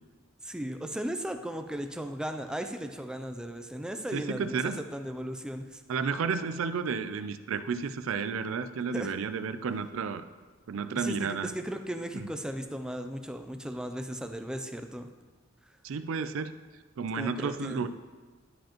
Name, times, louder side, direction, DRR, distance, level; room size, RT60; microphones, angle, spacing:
voice 1, 0.4-5.8 8.9-9.1 11.0-15.1 17.1-17.9, equal, 5° right, 6 dB, 0.3 m, -36 dB
voice 2, 4.1-4.8 5.9-10.2 10.7-11.5 12.1-12.3 15.8-16.5 17.0-17.9, right 5 dB, 75° right, 12 dB, 0.4 m, -32 dB
11.0 x 5.0 x 2.9 m, 1.4 s
head